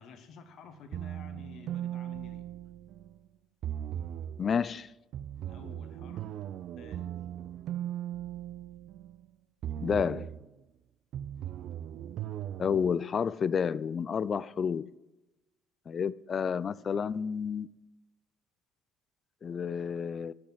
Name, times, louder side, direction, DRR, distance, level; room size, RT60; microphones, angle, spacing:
voice 1, 0.0-2.6 5.5-6.3 6.7-7.2, left 5 dB, 60° left, 1.3 m, -51 dB
sound 1, 0.9-3.2 3.6-4.5 5.1-9.2 9.6-10.4 11.1-12.9, right 11 dB, 60° right, 0.4 m, -38 dB
voice 2, 4.4-4.9 9.8-10.3 12.6-14.9 15.9-17.7 19.4-20.3, left 6 dB, 40° left, 0.3 m, -30 dB
9.9 x 6.0 x 6.3 m
hypercardioid pair, 60°, 0 cm